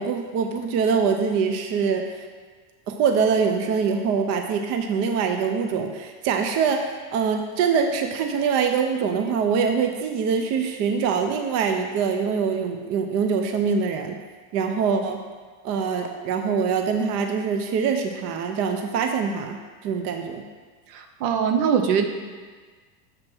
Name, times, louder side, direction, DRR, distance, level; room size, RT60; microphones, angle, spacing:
voice 1, 0.0-2.3 2.9-6.8 7.1-14.2 14.5-15.2 15.6-20.5, right 6 dB, 35° right, 5 dB, 0.4 m, -24 dB
voice 2, 20.9-22.1, right 7 dB, 65° right, 6 dB, 0.8 m, -22 dB
7.4 x 3.2 x 6.0 m, 1.5 s
supercardioid pair, 130°, 47 cm